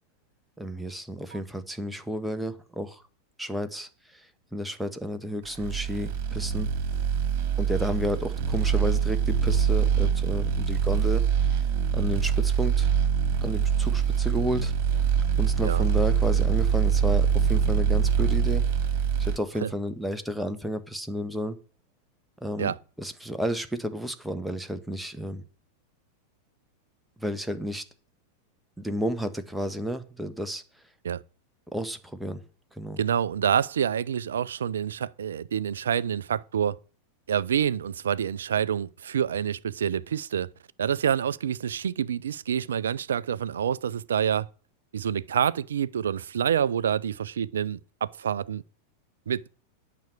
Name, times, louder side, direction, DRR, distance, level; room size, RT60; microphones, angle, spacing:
voice 1, 0.6-3.0 3.4-6.7 7.6-11.2 11.9-12.9 13.4-14.7 15.4-18.6 19.2-21.6 22.4-22.7 23.0-25.4 27.2-27.8 28.8-30.6 31.7-32.4 32.7-33.0, equal, ahead, 1.3 m, -32 dB
sound 1, 5.6-19.4, right 7 dB, 45° right, 2.2 m, -24 dB
voice 2, 33.0-36.8 37.3-40.5 40.8-44.5 44.9-48.6 49.3-49.4, right 8 dB, 65° right, 0.5 m, -27 dB
9.2 x 6.2 x 8.3 m
figure-of-eight pair, 90°, 0 cm